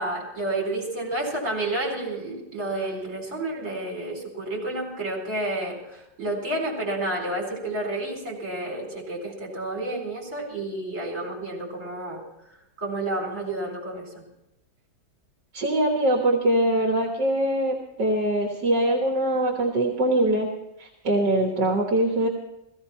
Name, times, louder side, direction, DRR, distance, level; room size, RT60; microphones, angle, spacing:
voice 1, 0.0-12.2 12.8-14.1, right 2 dB, 45° right, -2 dB, 4.6 m, -30 dB
voice 2, 15.5-20.5 20.8-22.3, right 1 dB, 75° right, 1 dB, 2.0 m, -23 dB
16.0 x 15.5 x 4.4 m, 0.90 s
omnidirectional pair, 1.9 m